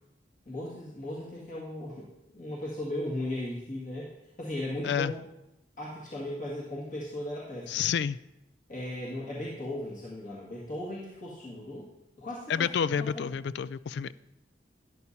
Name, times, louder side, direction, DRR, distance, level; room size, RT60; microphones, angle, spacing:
voice 1, 0.5-2.0 2.3-4.1 4.4-5.2 5.8-7.8 8.7-11.9 12.2-13.2, left 1 dB, 45° left, -6 dB, 1.9 m, -37 dB
voice 2, 7.7-8.2 12.5-14.1, left 7 dB, 70° left, 17 dB, 0.3 m, -29 dB
13.0 x 11.0 x 2.8 m, 0.88 s
head